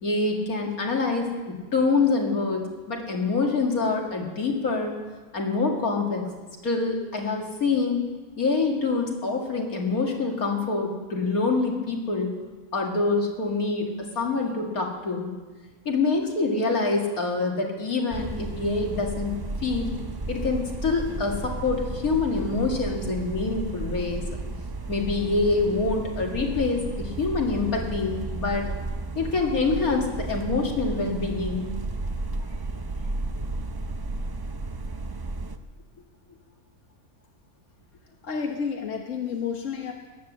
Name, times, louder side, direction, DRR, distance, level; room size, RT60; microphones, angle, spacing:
voice 1, 0.0-5.0 5.3-6.3 6.6-8.0 8.4-12.4 12.7-15.3 15.9-20.0 20.3-24.3 24.9-28.7 29.1-31.7, left 3 dB, 75° left, 0 dB, 2.7 m, -26 dB
sound 1, 18.1-35.6, right 3 dB, 40° right, 0.3 m, -33 dB
voice 2, 38.2-39.9, left 6 dB, 60° left, 2 dB, 1.5 m, -30 dB
18.0 x 10.0 x 7.4 m, 1.3 s
omnidirectional pair, 1.5 m